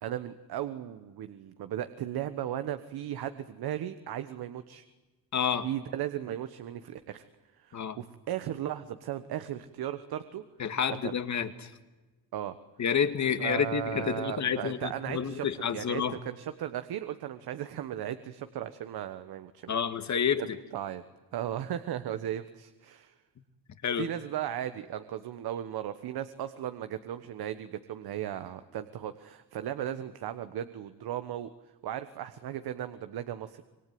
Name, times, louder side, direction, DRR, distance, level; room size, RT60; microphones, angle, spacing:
voice 1, 0.0-4.8 5.6-7.2 7.6-10.4 10.9-11.2 12.3-12.6 13.4-19.8 20.4-21.0 21.3-23.1 23.9-31.5 31.8-33.6, right 11 dB, 70° right, 10 dB, 1.4 m, -36 dB
voice 2, 5.3-5.7 7.7-8.0 10.6-11.7 12.8-16.2 19.7-20.6 23.8-24.1, left 7 dB, 45° left, 9 dB, 2.1 m, -29 dB
26.5 x 21.0 x 9.4 m, 1.2 s
cardioid pair, 100°, 39 cm